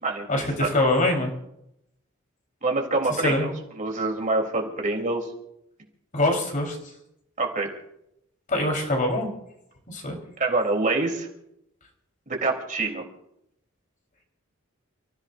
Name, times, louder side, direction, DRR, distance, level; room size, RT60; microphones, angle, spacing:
voice 1, 0.3-1.3 3.2-3.5 6.1-6.8 8.5-9.3 9.9-10.2, left 1 dB, 40° left, 1 dB, 4.1 m, -24 dB
voice 2, 2.6-3.5 3.8-5.3 7.4-7.7 10.4-11.3 12.3-13.0, right 3 dB, 40° right, 1 dB, 3.4 m, -25 dB
30.0 x 15.5 x 2.6 m, 0.78 s
head